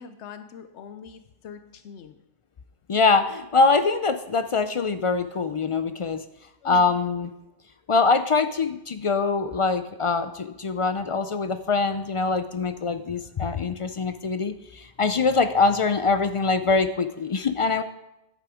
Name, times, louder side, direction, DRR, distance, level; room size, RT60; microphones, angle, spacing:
voice 1, 0.0-2.2 6.6-6.9, left 7 dB, 90° left, 10 dB, 0.9 m, -43 dB
voice 2, 2.9-6.2 6.6-7.3 7.9-17.8, left 4 dB, 60° left, 10 dB, 0.3 m, -23 dB
10.5 x 8.4 x 4.9 m, 0.90 s
omnidirectional pair, 1.1 m